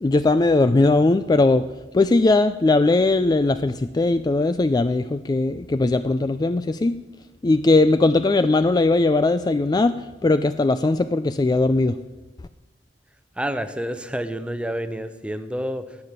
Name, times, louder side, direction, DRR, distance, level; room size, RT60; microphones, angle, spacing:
voice 1, 0.0-1.7 1.9-7.0 7.4-10.0 10.2-12.0, left 2 dB, 20° left, 11 dB, 0.3 m, -19 dB
voice 2, 13.4-16.0, equal, 5° right, 10 dB, 0.7 m, -29 dB
17.5 x 7.5 x 6.6 m, 1.1 s
head